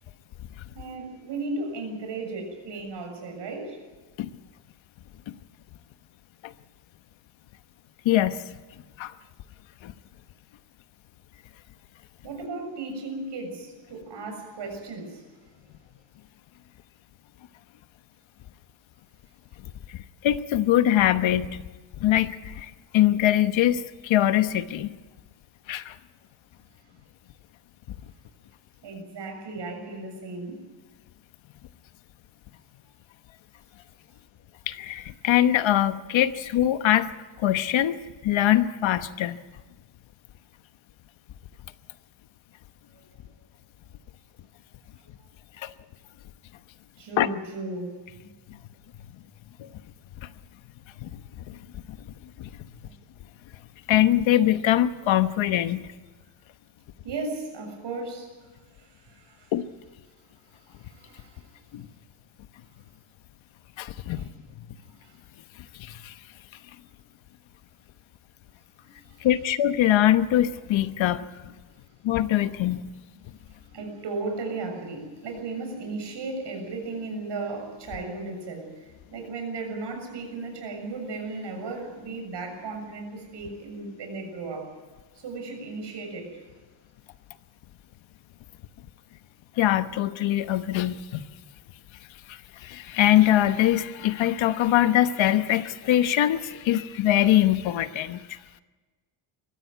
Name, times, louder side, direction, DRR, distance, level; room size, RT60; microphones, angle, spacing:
voice 1, 0.8-3.8 12.2-15.2 28.8-30.6 42.9-43.0 47.0-48.3 52.8-52.9 57.0-59.5 60.5-61.5 64.1-64.3 64.9-65.2 68.9-69.3 73.6-84.7 85.2-86.4, right 3 dB, 65° right, 3 dB, 7.1 m, -36 dB
voice 2, 8.0-8.5 9.0-9.1 9.8-9.9 19.9-21.6 22.0-24.9 25.7-25.9 34.7-37.1 37.4-38.0 38.2-39.4 45.6-45.7 47.2-47.3 49.6-49.7 50.2-50.3 51.0-51.2 51.5-52.0 52.4-52.5 53.9-55.9 59.5-59.6 61.7-61.9 63.8-64.3 65.8-66.1 69.2-71.5 72.0-72.9 89.6-91.2 92.3-98.4, left 12 dB, 85° left, 12 dB, 1.1 m, -23 dB
22.5 x 15.0 x 9.4 m, 1.3 s
cardioid pair, 150°, 45 cm